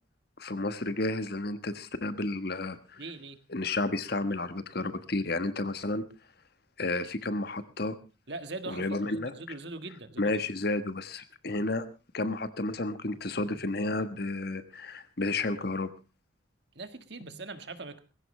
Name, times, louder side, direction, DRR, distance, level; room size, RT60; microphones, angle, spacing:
voice 1, 0.4-3.0 3.5-6.0 6.8-8.0 8.7-9.3 10.2-11.9 12.1-15.9 17.2-17.3, left 2 dB, 50° left, 11 dB, 1.3 m, -31 dB
voice 2, 3.0-3.4 8.3-10.4 16.7-18.0, right 3 dB, 55° right, 9 dB, 1.7 m, -41 dB
20.0 x 16.0 x 3.3 m, 0.31 s
head